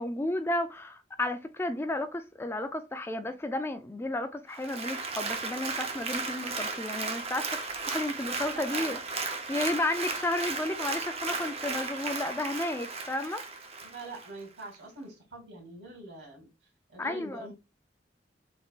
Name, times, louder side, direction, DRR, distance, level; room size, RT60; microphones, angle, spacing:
voice 1, 0.0-9.0 9.5-13.5 17.0-17.5, left 1 dB, 15° left, 0.4 m, -33 dB
Applause, 4.5-14.3 14.7-14.8, right 4 dB, 35° right, 0.6 m, -35 dB
voice 2, 8.5-9.0 13.8-16.5 16.9-17.5, right 2 dB, 80° right, 2.3 m, -44 dB
3.6 x 3.6 x 2.4 m
head